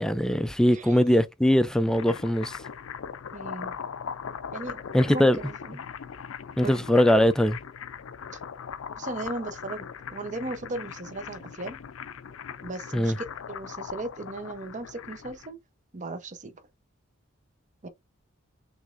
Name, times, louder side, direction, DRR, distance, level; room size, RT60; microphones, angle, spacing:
voice 1, 0.0-2.6 4.9-5.4 6.6-7.6 12.9-13.2, equal, 5° left, 0.3 m, -21 dB
voice 2, 0.7-1.0 3.3-3.8 4.5-5.8 6.6-6.9 8.3-8.4 9.0-11.8 12.6-15.6 15.9-16.6 17.8-17.9, right 2 dB, 35° right, 0.7 m, -37 dB
sound 1, 1.7-15.5, left 7 dB, 80° left, 0.5 m, -40 dB
6.0 x 3.1 x 2.5 m
head